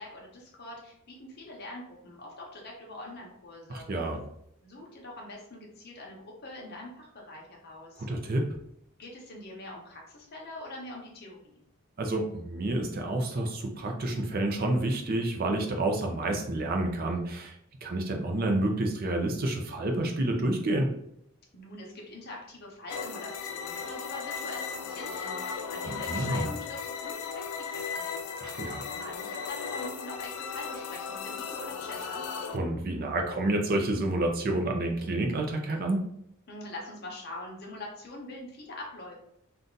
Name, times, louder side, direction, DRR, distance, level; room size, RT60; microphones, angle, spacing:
voice 1, 0.0-3.9 4.6-8.1 9.0-11.6 21.5-28.2 28.9-32.2 36.5-39.1, left 2 dB, 45° left, -2 dB, 0.8 m, -43 dB
voice 2, 3.7-4.2 8.0-8.5 12.0-17.5 17.8-20.9 25.8-26.5 28.4-28.8 32.5-36.0, right 1 dB, 40° right, 3 dB, 0.5 m, -29 dB
sound 1, 22.9-32.6, left 6 dB, 80° left, 0.4 m, -36 dB
2.6 x 2.3 x 3.8 m, 0.75 s
head